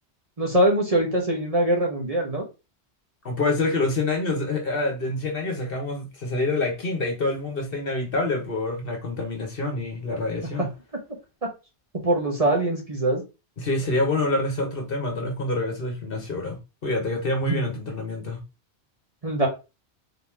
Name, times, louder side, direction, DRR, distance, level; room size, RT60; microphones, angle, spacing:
voice 1, 0.4-2.4 10.6-10.7 11.4-11.5 12.0-13.2 17.4-17.7 19.2-19.5, right 1 dB, 35° right, 1.2 m, -23 dB
voice 2, 3.2-10.7 13.6-18.4, left 2 dB, 55° left, 1.4 m, -27 dB
4.0 x 2.9 x 3.5 m
omnidirectional pair, 1.1 m